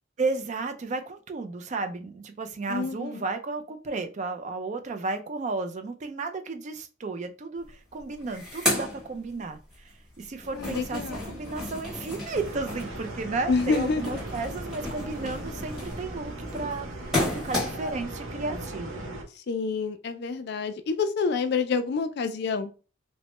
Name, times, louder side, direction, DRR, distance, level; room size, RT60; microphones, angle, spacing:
voice 1, 0.2-16.9 17.2-19.0, right 3 dB, 35° right, 0.3 m, -33 dB
voice 2, 2.7-3.2 10.5-11.4 13.5-14.2 19.4-22.7, left 4 dB, 55° left, 0.3 m, -28 dB
sound 1, 7.6-7.7 8.0-9.8 10.1-18.0, left 1 dB, 5° right, 1.0 m, -33 dB
sound 2, 12.3-19.2, right 1 dB, 80° right, 0.7 m, -38 dB
3.1 x 2.1 x 2.9 m
head